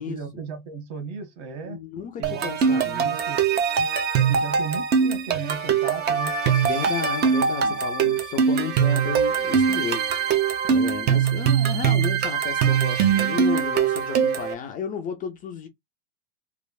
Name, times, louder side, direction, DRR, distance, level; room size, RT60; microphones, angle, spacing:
voice 1, 0.0-1.8 2.2-3.4 4.3-6.4, right 5 dB, 50° right, 1.4 m, -35 dB
voice 2, 1.6-3.2 6.6-15.7, left 6 dB, 25° left, 0.5 m, -33 dB
sound 1, 2.2-14.5, right 7 dB, 25° right, 0.7 m, -22 dB
3.3 x 2.5 x 2.3 m
hypercardioid pair, 130°, 37 cm